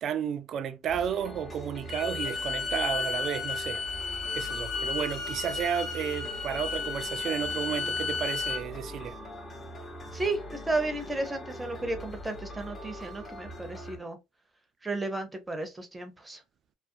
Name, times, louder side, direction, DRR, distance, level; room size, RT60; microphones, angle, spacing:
voice 1, 0.0-3.8 4.4-9.2, right 8 dB, 55° right, 0.3 m, -32 dB
sound 1, 0.9-14.0, equal, 30° left, 0.9 m, -42 dB
Bowed string instrument, 1.9-8.6, left 4 dB, 60° left, 1.1 m, -33 dB
voice 2, 10.1-14.2 14.8-16.4, right 2 dB, 15° right, 0.7 m, -33 dB
2.4 x 2.1 x 2.5 m
supercardioid pair, 95°, 0 cm